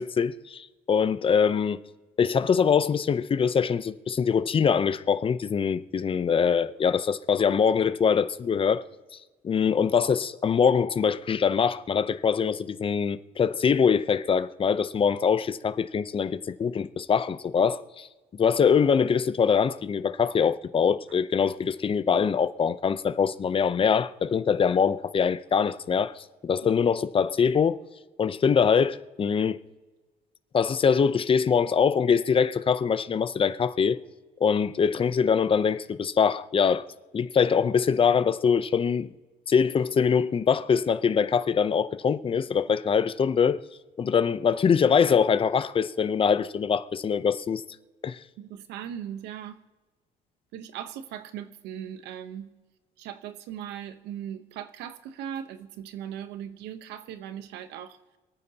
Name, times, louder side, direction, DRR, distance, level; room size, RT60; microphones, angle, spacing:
voice 1, 0.0-1.8 2.2-8.8 9.4-18.1 18.4-27.8 28.2-29.6 30.5-34.0 34.4-36.8 37.1-39.1 39.5-43.6 44.0-47.6 48.0-48.2, left 6 dB, 30° left, 0.7 m, -23 dB
voice 2, 48.4-49.6 50.5-52.5 53.0-58.0, right 9 dB, 90° right, 1.0 m, -39 dB
28.0 x 9.5 x 2.9 m
cardioid pair, 110°, 17 cm